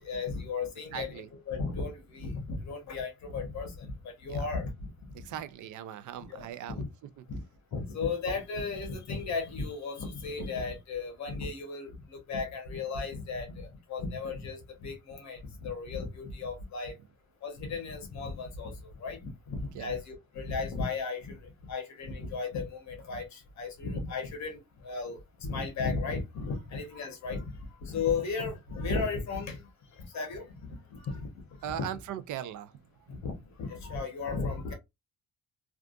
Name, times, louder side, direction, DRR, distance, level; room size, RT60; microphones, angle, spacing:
voice 1, 0.0-4.9 6.3-6.9 7.3-7.4 7.7-16.9 17.4-18.7 19.0-27.5 27.8-29.6 30.1-31.3 31.7-31.9 33.1-34.7, left 4 dB, 55° left, 1.2 m, -35 dB
voice 2, 0.9-1.3 4.3-4.5 5.1-6.8 19.7-19.9 31.6-32.7 33.0-33.1, right 10 dB, 65° right, 0.5 m, -39 dB
3.5 x 2.4 x 2.5 m
cardioid pair, 160°, 32 cm